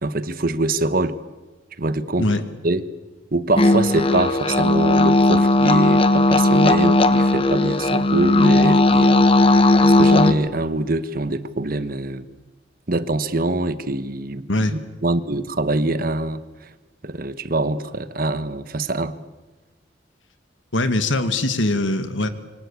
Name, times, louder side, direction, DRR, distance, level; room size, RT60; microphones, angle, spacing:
voice 1, 0.0-1.2 1.8-2.3 2.6-2.9 3.3-12.3 12.9-16.7 17.0-19.1, right 2 dB, 50° right, 13 dB, 1.3 m, -24 dB
sound 1, 3.6-10.3, left 2 dB, 30° left, 1.1 m, -16 dB
voice 2, 14.5-14.8 20.7-22.3, left 2 dB, 85° left, 10 dB, 2.1 m, -21 dB
26.0 x 24.5 x 8.5 m, 1.2 s
head